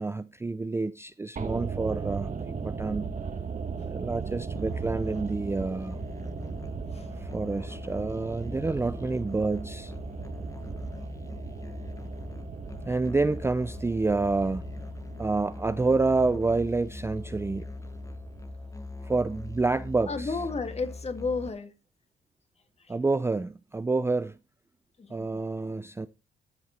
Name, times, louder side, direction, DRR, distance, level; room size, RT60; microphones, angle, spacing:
voice 1, 0.0-3.2 3.8-6.0 7.2-9.9 10.7-10.8 12.9-14.7 15.2-17.7 19.0-20.4 22.9-24.4 25.1-26.1, right 3 dB, 10° right, 0.4 m, -28 dB
sound 1, 1.4-19.6 19.8-19.9, right 5 dB, 40° right, 1.5 m, -38 dB
Musical instrument, 4.5-21.5, left 2 dB, 15° left, 1.0 m, -41 dB
voice 2, 20.1-21.7 22.8-22.9 25.0-25.4, left 4 dB, 30° left, 1.8 m, -33 dB
12.5 x 6.6 x 4.3 m
cardioid pair, 90°, 20 cm